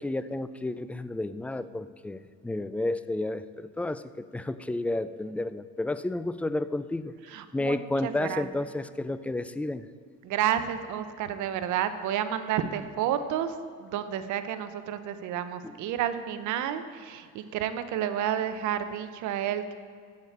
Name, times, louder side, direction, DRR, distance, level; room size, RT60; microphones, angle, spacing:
voice 1, 0.0-7.1 7.5-9.9, left 2 dB, 5° left, 14 dB, 0.3 m, -31 dB
voice 2, 7.3-8.5 10.2-19.7, right 10 dB, 70° right, 11 dB, 0.9 m, -30 dB
7.7 x 7.4 x 8.5 m, 2.1 s
supercardioid pair, 95°, 31 cm